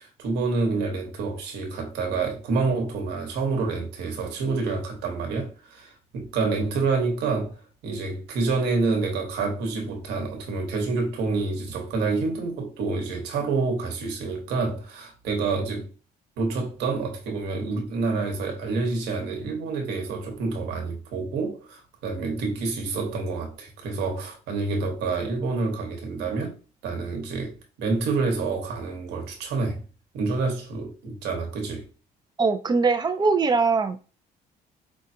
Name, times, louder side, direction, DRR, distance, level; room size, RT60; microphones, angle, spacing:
voice 1, 0.0-7.6 7.8-15.9 16.4-26.6 26.8-29.8 30.1-31.8, right 3 dB, 85° right, 1.2 m, -28 dB
voice 2, 32.4-34.0, right 4 dB, 25° right, 0.5 m, -21 dB
5.0 x 2.3 x 2.7 m
cardioid pair, 110°, 17 cm